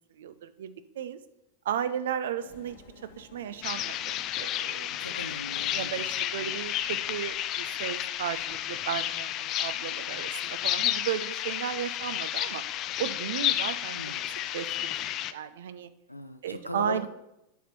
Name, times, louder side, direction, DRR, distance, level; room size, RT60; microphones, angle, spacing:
voice 1, 0.2-1.2 1.6-2.8 3.2-4.9 5.7-12.6 13.0-14.0 14.5-15.9 16.4-17.1, right 9 dB, 60° right, 13 dB, 0.5 m, -35 dB
sound 1, 2.4-15.1, left 6 dB, 55° left, 1.1 m, -56 dB
sound 2, 3.6-15.3, left 12 dB, 35° left, 0.4 m, -32 dB
voice 2, 5.0-6.1 6.4-6.5 13.9-14.2 16.1-17.1, left 1 dB, 85° left, 8 dB, 0.7 m, -39 dB
8.1 x 4.5 x 5.9 m, 0.85 s
figure-of-eight pair, 90°, 0 cm